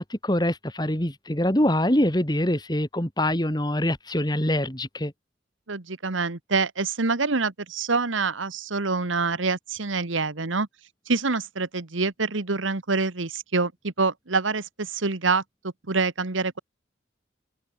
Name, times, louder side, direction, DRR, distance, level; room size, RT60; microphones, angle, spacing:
voice 1, 0.0-5.1, left 1 dB, 20° left, 2.8 m, -24 dB
voice 2, 5.7-10.7 11.1-15.4 15.9-16.6, right 4 dB, 90° right, 1.5 m, -26 dB
head